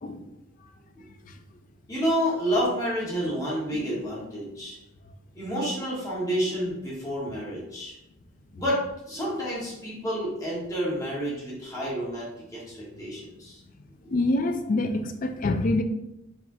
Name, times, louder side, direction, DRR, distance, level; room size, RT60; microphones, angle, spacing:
voice 1, 1.9-4.8 5.3-8.0 8.6-13.6 14.0-14.1, equal, 15° left, -7 dB, 1.4 m, -29 dB
voice 2, 14.1-15.8, left 2 dB, 40° left, 7 dB, 0.4 m, -25 dB
4.7 x 3.4 x 2.7 m, 0.87 s
head